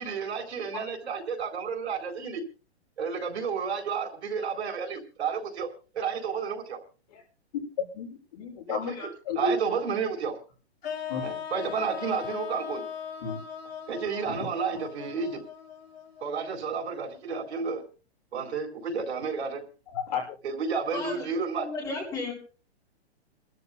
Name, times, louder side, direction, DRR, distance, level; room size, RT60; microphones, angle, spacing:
voice 1, 0.0-2.4 3.0-5.7 5.9-6.8 8.7-9.1 9.3-10.3 11.2-12.8 13.9-15.4 16.2-17.8 18.3-19.6 20.4-21.7, right 5 dB, 80° right, 4.4 m, -31 dB
voice 2, 7.9-9.5 11.1-11.2 13.2-13.4 14.3-14.5 19.9-20.3, left 6 dB, 40° left, 6.7 m, -33 dB
sound 1, 10.8-16.9, left 8 dB, 65° left, 2.8 m, -39 dB
voice 3, 20.7-22.3, left 3 dB, 10° left, 3.7 m, -35 dB
30.0 x 13.0 x 2.2 m
hypercardioid pair, 175°, 33 cm